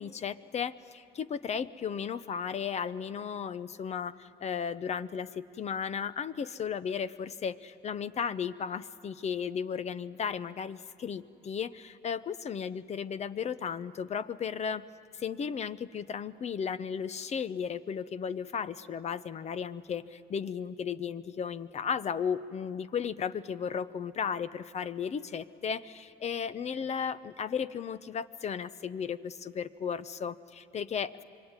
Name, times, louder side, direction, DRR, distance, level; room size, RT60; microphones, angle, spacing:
voice 1, 0.0-14.8 15.2-31.2, left 7 dB, 40° left, 14 dB, 0.8 m, -35 dB
26.5 x 23.0 x 9.7 m, 2.6 s
cardioid pair, 110°, 17 cm